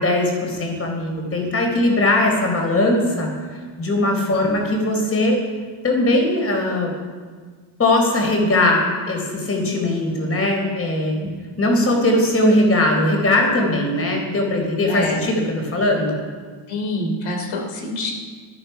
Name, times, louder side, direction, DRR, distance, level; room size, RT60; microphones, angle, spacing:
voice 1, 0.0-3.3 3.8-5.4 5.8-6.9 7.8-11.1 11.6-16.2, left 1 dB, 30° left, 1 dB, 4.4 m, -19 dB
voice 2, 14.9-15.3 16.7-18.1, left 2 dB, 80° left, 2 dB, 3.3 m, -27 dB
19.0 x 13.0 x 5.8 m, 1.6 s
cardioid pair, 135°, 48 cm